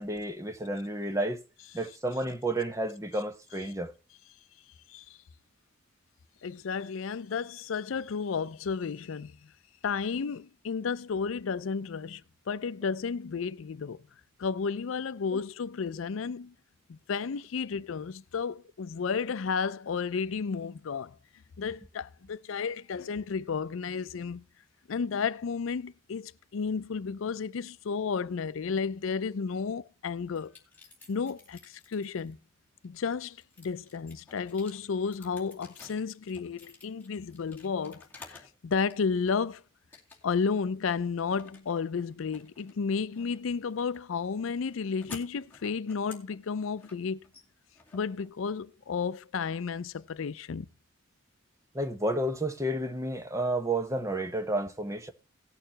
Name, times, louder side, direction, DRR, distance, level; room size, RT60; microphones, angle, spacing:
voice 1, 0.0-1.4 1.7-3.9 51.7-55.1, right 1 dB, 15° right, 0.8 m, -31 dB
voice 2, 6.4-9.4 9.8-12.2 12.5-14.0 14.4-16.5 16.9-21.2 21.6-24.4 24.9-30.5 31.1-32.4 32.8-39.6 40.2-47.2 47.9-50.7, left 5 dB, 80° left, 0.5 m, -32 dB
sound 1, 30.4-32.3 32.8-38.6 38.9-39.5 39.9-40.5 40.8-48.7, left 3 dB, 10° left, 2.3 m, -53 dB
18.5 x 6.7 x 2.8 m
head